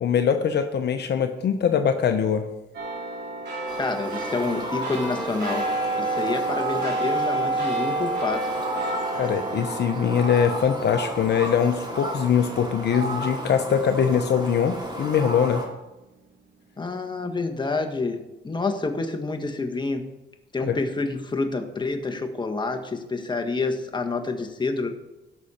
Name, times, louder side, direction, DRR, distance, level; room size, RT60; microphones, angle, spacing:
voice 1, 0.0-2.4 9.1-15.6 20.6-20.8, left 7 dB, 60° left, 6 dB, 0.9 m, -22 dB
sound 1, 2.7-13.5 13.9-14.0, right 2 dB, 60° right, 3.3 m, -30 dB
Fowl, 3.7-15.6, right 1 dB, 20° right, 4.0 m, -34 dB
voice 2, 3.8-5.7 6.0-8.4 16.8-20.1 20.5-24.9, left 3 dB, 20° left, 5 dB, 1.6 m, -28 dB
17.0 x 6.5 x 4.4 m, 1.0 s
cardioid pair, 90°, 20 cm